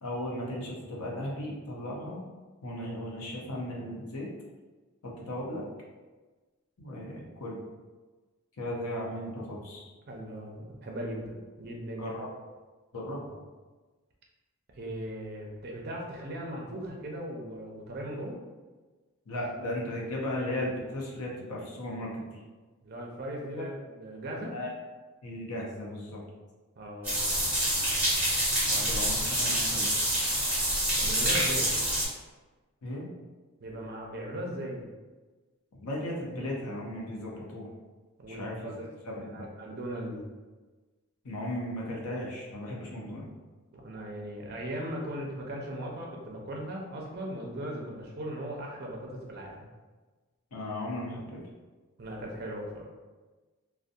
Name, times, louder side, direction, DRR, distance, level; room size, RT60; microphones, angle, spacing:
voice 1, 0.0-2.2 2.6-4.3 5.0-5.6 6.8-7.6 8.6-9.8 12.0-12.3 12.9-13.4 19.3-22.4 23.6-23.7 24.5-24.7 25.2-26.2 28.6-29.9 32.8-33.1 35.8-37.7 38.3-38.7 39.1-39.5 41.2-43.3 50.5-51.4, left 1 dB, 85° left, -3 dB, 0.6 m, -36 dB
voice 2, 10.1-12.1 14.7-18.4 22.8-24.5 26.8-27.5 31.0-31.8 33.6-34.9 38.2-38.9 39.3-40.3 43.7-49.7 52.0-52.8, right 1 dB, 45° right, -1 dB, 0.4 m, -38 dB
sound 1, 27.0-32.0, right 1 dB, 10° right, 0.9 m, -27 dB
2.5 x 2.1 x 2.6 m, 1.3 s
head